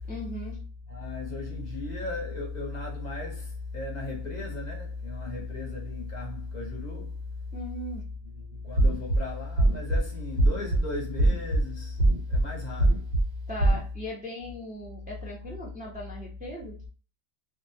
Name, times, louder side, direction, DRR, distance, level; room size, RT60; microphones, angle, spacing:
voice 1, 0.1-0.6 7.5-8.1 13.5-16.8, equal, 15° right, 0.4 m, -38 dB
voice 2, 0.9-7.2 8.2-13.0, left 3 dB, 45° left, 0.8 m, -35 dB
sound 1, 8.8-9.2 9.6-10.0 10.4-10.8 11.2-11.6 12.0-12.4 12.8-13.2 13.6-13.8, right 1 dB, 65° right, 1.0 m, -21 dB
2.2 x 2.1 x 2.6 m
omnidirectional pair, 1.2 m